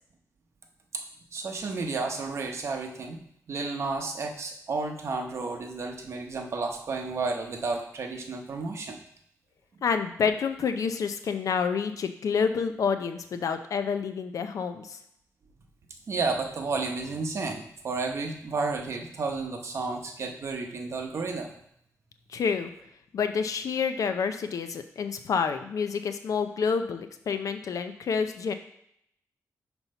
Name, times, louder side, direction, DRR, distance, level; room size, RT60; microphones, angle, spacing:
voice 1, 1.3-3.2 3.5-9.0 16.1-21.5, right 3 dB, 50° right, 3 dB, 1.0 m, -32 dB
voice 2, 9.8-15.0 22.3-22.7 23.1-28.5, left 6 dB, 70° left, 8 dB, 0.6 m, -28 dB
5.7 x 4.4 x 5.5 m, 0.70 s
wide cardioid pair, 155°, 6 cm